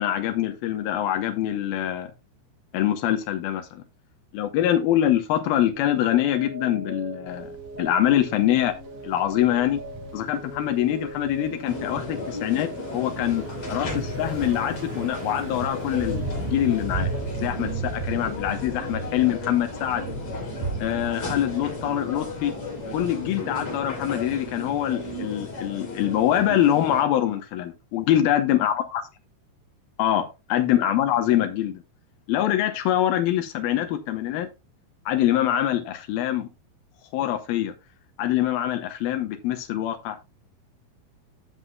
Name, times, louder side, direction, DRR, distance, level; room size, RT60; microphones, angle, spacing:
voice 1, 0.0-2.1 2.7-3.8 4.3-7.5 7.8-8.8 9.0-9.8 10.1-17.1 17.4-20.1 20.8-22.5 22.9-29.0 30.0-31.8 32.3-34.5 35.1-36.5 37.1-37.7 38.2-40.2, left 12 dB, 85° left, 2.1 m, -24 dB
sound 1, 5.7-17.4, right 2 dB, 10° right, 0.8 m, -40 dB
Thunder / Bicycle, 7.3-25.7, right 3 dB, 50° right, 3.5 m, -37 dB
sound 2, 11.7-27.0, left 2 dB, 35° left, 3.5 m, -35 dB
16.0 x 5.7 x 2.3 m
omnidirectional pair, 5.7 m